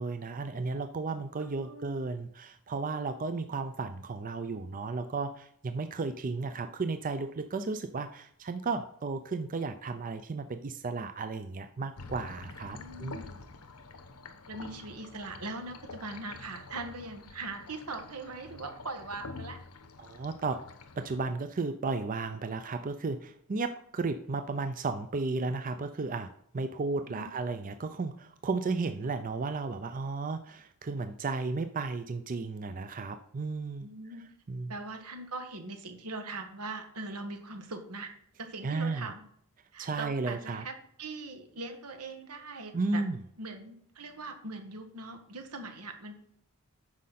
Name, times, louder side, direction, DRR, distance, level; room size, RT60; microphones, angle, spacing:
voice 1, 0.0-13.2 20.0-20.6 21.0-26.3 26.5-33.9 34.5-34.7 38.6-39.1 39.8-40.6 42.7-43.2, right 3 dB, 35° right, 8 dB, 0.5 m, -34 dB
voice 2, 1.4-2.0 12.8-13.4 14.5-19.6 27.1-27.3 29.0-29.1 33.8-34.2 34.7-38.1 38.4-39.3 39.7-43.0 43.4-46.2, right 3 dB, 85° right, 6 dB, 1.5 m, -41 dB
sound 1, 12.0-21.2, left 3 dB, 80° left, 1.0 m, -47 dB
9.7 x 6.3 x 4.2 m, 0.67 s
head